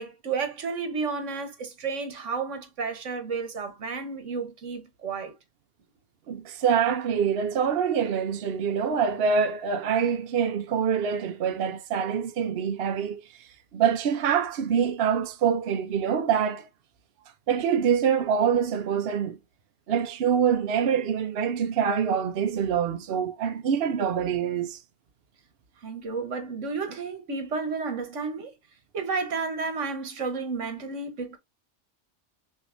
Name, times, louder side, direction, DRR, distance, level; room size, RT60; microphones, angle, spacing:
voice 1, 0.0-5.3 25.8-28.5 28.9-31.4, right 4 dB, 80° right, 1.4 m, -32 dB
voice 2, 6.3-16.7 17.5-19.4 19.9-24.8, right 7 dB, 60° right, 0.8 m, -25 dB
6.4 x 2.7 x 2.5 m
omnidirectional pair, 1.2 m